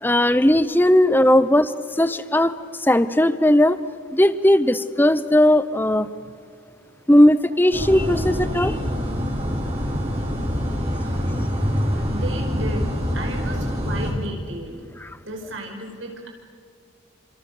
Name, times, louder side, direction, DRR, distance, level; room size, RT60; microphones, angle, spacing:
voice 1, 0.0-3.8 4.1-6.1 7.1-8.8 15.0-15.2, left 1 dB, 10° left, 14 dB, 0.8 m, -17 dB
sound 1, 7.7-14.1, equal, 30° right, 4.9 m, -25 dB
voice 2, 12.1-14.8 15.2-16.3, right 1 dB, 85° right, 2 dB, 5.0 m, -33 dB
28.5 x 26.5 x 6.7 m, 2.1 s
head